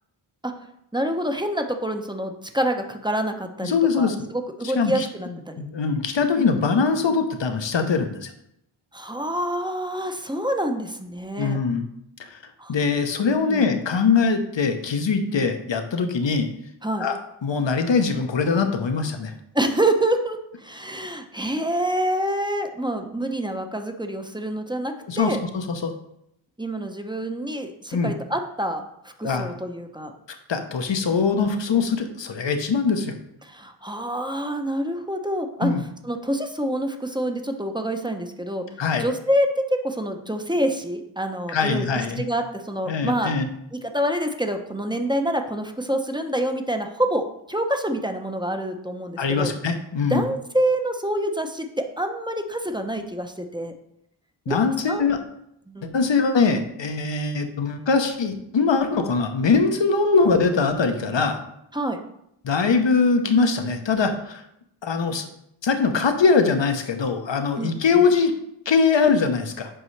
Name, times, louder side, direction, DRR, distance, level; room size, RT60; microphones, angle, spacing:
voice 1, 0.9-5.6 8.9-11.6 12.6-12.7 13.5-13.7 15.3-15.5 16.8-17.1 19.5-25.4 26.6-30.1 33.4-35.7 36.0-38.6 39.0-41.9 42.2-43.3 43.7-49.5 50.1-53.7 54.5-54.6 54.9-55.1 55.7-55.9 61.7-62.0 67.6-68.0, right 1 dB, 10° right, 5 dB, 0.7 m, -27 dB
voice 2, 3.6-4.3 4.6-5.1 5.6-8.3 11.4-11.8 12.2-12.4 12.7-16.5 17.0-19.3 25.1-25.9 27.9-28.1 29.2-29.5 30.5-33.1 35.6-35.8 38.8-39.0 41.5-42.3 42.9-43.5 49.2-50.2 54.5-55.2 55.8-61.4 62.4-64.4 64.8-65.3 65.6-68.3 68.7-69.7, left 5 dB, 65° left, 7 dB, 0.9 m, -22 dB
7.8 x 5.4 x 3.2 m, 0.77 s
wide cardioid pair, 70°, 47 cm